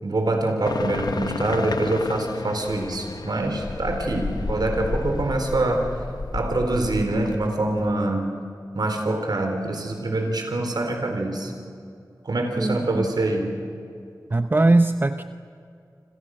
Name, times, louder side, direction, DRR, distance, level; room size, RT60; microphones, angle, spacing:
voice 1, 0.0-5.9 6.3-8.3 8.7-11.5 12.2-13.6, right 2 dB, 75° right, 4 dB, 4.3 m, -25 dB
sound 1, 0.6-7.9, left 3 dB, 75° left, 1.2 m, -32 dB
voice 2, 12.6-13.1 14.3-15.2, right 2 dB, 30° right, 9 dB, 0.8 m, -20 dB
29.5 x 27.5 x 6.6 m, 2.4 s
wide cardioid pair, 75°, 7 cm